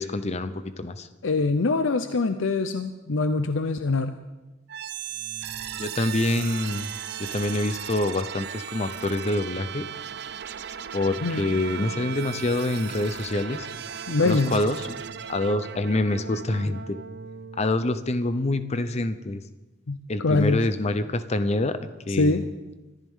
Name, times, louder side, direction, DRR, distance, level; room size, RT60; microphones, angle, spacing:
voice 1, 0.0-1.1 5.8-6.9 7.2-9.9 10.9-13.7 14.2-15.0 15.3-17.0 17.6-19.4 20.1-21.8 22.1-22.5, left 2 dB, 35° left, 12 dB, 0.7 m, -26 dB
voice 2, 1.2-4.2 11.2-11.5 14.1-14.6 19.9-20.6 22.1-22.4, left 3 dB, 85° left, 9 dB, 0.7 m, -24 dB
sound 1, 4.7-18.6, right 8 dB, 60° right, 0.6 m, -37 dB
24.5 x 14.0 x 3.7 m, 1.1 s
head